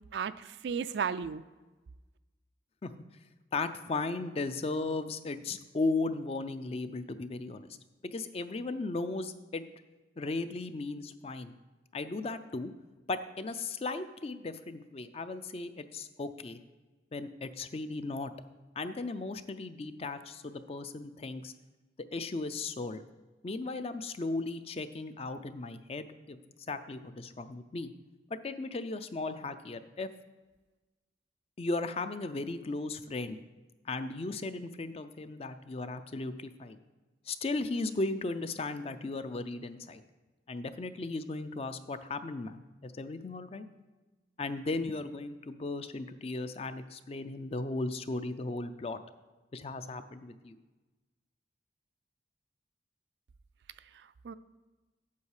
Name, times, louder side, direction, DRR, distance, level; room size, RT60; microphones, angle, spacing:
voice 1, 0.1-1.4 54.2-54.3, right 6 dB, 70° right, 14 dB, 0.3 m, -34 dB
voice 2, 3.5-7.7 8.0-9.6 10.2-11.6 11.9-12.7 13.1-16.6 17.1-18.3 18.8-21.5 22.1-23.0 23.4-26.4 26.7-27.9 28.3-30.1 31.6-33.4 33.9-36.8 37.3-40.0 40.5-43.7 44.4-49.0 49.5-50.6, left 3 dB, 35° left, 11 dB, 0.4 m, -36 dB
8.3 x 7.3 x 4.8 m, 1.2 s
head